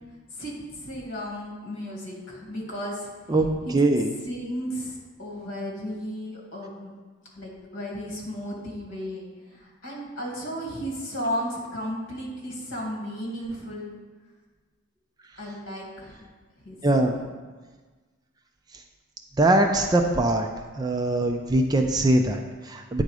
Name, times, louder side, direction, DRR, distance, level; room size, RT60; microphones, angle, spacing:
voice 1, 0.3-3.1 3.6-3.8 4.2-6.9 7.3-14.0 15.4-16.2 16.6-17.2, equal, 60° left, -3 dB, 2.0 m, -34 dB
voice 2, 3.3-4.1 16.8-17.1 19.4-20.5 20.8-23.0, right 2 dB, 20° right, 4 dB, 0.4 m, -22 dB
9.1 x 3.9 x 4.8 m, 1.4 s
head